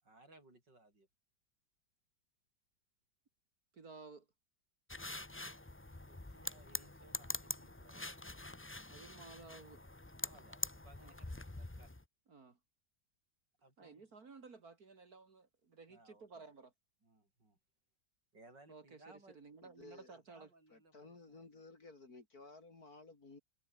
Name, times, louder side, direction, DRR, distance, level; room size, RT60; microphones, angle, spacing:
voice 1, 0.0-1.1 5.9-8.2 10.2-12.0 13.6-14.1 15.9-16.5 17.0-17.6 18.3-19.4 20.1-21.6, right 2 dB, 80° right, 8.9 m, -64 dB
voice 2, 3.7-4.3 8.9-9.8 11.0-11.1 12.3-12.6 13.8-16.7 18.7-20.5, right 4 dB, 55° right, 2.8 m, -55 dB
sound 1, 4.9-12.0, left 2 dB, 15° left, 0.5 m, -45 dB
voice 3, 19.6-20.1 20.7-23.4, left 3 dB, 55° left, 4.0 m, -56 dB
omnidirectional pair, 1.9 m